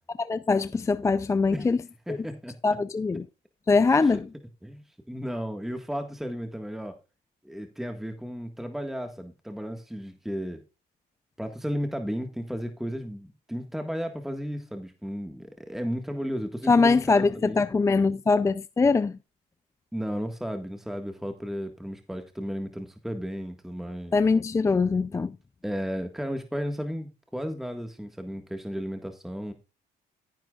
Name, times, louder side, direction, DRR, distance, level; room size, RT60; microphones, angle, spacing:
voice 1, 0.2-1.8 2.1-2.2 2.6-3.3 3.7-4.2 16.7-19.1 24.1-25.4, left 4 dB, 15° left, 0.4 m, -22 dB
voice 2, 2.1-2.5 4.0-4.2 4.6-6.9 7.4-10.6 11.4-17.6 19.9-24.1 25.6-29.5, equal, ahead, 1.7 m, -34 dB
14.0 x 10.5 x 2.4 m
cardioid pair, 110°, 17 cm